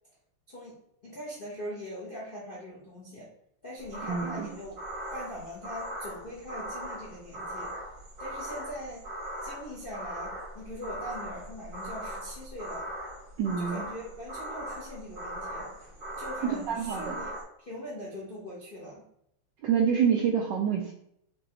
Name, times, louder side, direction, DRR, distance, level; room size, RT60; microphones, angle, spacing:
voice 1, 0.5-3.3 3.6-4.8 5.1-7.7 8.2-9.0 9.4-12.9 13.6-15.7 16.2-19.0, equal, 60° left, -5 dB, 0.5 m, -41 dB
sound 1, 3.8-17.4, right 1 dB, 40° right, 2.2 m, -39 dB
voice 2, 4.1-4.5 13.4-13.8 16.7-17.2 19.6-20.9, right 7 dB, 80° right, 1 dB, 1.0 m, -27 dB
5.2 x 3.0 x 2.9 m, 0.74 s
omnidirectional pair, 2.4 m